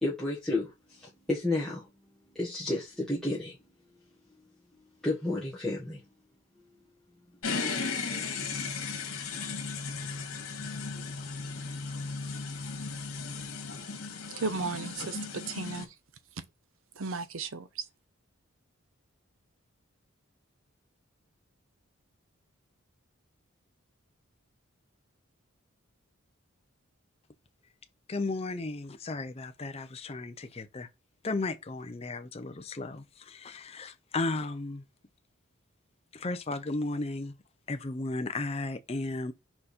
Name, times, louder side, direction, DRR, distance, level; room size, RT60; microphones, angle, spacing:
voice 1, 0.0-1.9 2.3-3.6 5.0-6.0, left 2 dB, 5° left, 1.3 m, -31 dB
sound 1, 7.4-15.8, left 4 dB, 75° left, 1.7 m, -36 dB
voice 2, 14.3-15.9 17.0-17.9, right 4 dB, 70° right, 0.7 m, -35 dB
voice 3, 28.1-30.9 31.2-34.8 36.1-37.4 37.7-39.3, left 2 dB, 30° left, 0.5 m, -34 dB
5.0 x 4.5 x 4.2 m
head